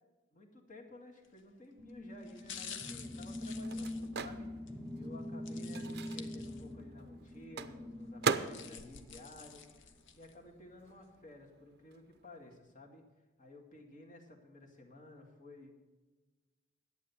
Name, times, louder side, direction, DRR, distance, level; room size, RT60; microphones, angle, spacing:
voice 1, 0.3-4.5 4.9-9.6 10.2-13.0 13.4-15.7, left 2 dB, 40° left, 1 dB, 2.0 m, -54 dB
sound 1, 1.2-1.5 2.2-4.8 5.5-6.9 7.3-7.4 8.2-10.3 10.8-10.9, left 7 dB, 65° left, 0.9 m, -50 dB
sound 2, 1.8-9.6, left 1 dB, ahead, 0.8 m, -44 dB
Microwave oven, 2.3-10.4 10.7-12.6, right 5 dB, 55° right, 0.6 m, -41 dB
11.5 x 8.6 x 7.0 m, 1.2 s
head